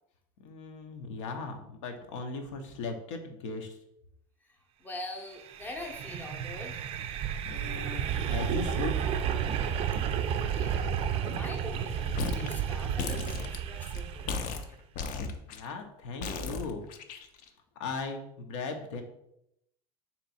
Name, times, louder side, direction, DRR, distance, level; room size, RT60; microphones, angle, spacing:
voice 1, 0.4-3.8 7.4-9.0 15.2-16.8 17.8-19.0, left 4 dB, 85° left, 4 dB, 0.7 m, -38 dB
voice 2, 4.4-6.8 10.5-10.8 11.3-14.6, left 2 dB, 10° left, 3 dB, 0.6 m, -43 dB
sound 1, 5.4-14.6, right 8 dB, 40° right, 0.3 m, -32 dB
sound 2, 12.1-12.5 12.8-14.0 14.3-15.6 16.2-17.5, left 4 dB, 55° left, 0.5 m, -35 dB
3.5 x 2.9 x 4.1 m, 0.80 s
supercardioid pair, 125°, 15 cm